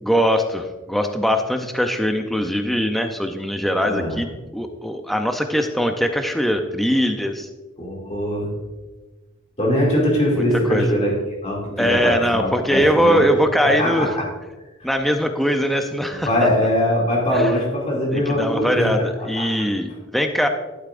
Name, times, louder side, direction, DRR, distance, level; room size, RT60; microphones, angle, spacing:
voice 1, 0.0-7.5 10.4-10.9 11.8-14.1 14.8-16.5 17.3-17.5 18.1-20.5, equal, ahead, 5 dB, 0.4 m, -21 dB
voice 2, 7.8-8.5 9.6-11.1 11.4-13.2 13.6-14.1 16.1-18.9 19.2-19.5, left 1 dB, 30° left, -3 dB, 2.4 m, -21 dB
11.5 x 8.5 x 2.5 m, 1.2 s
head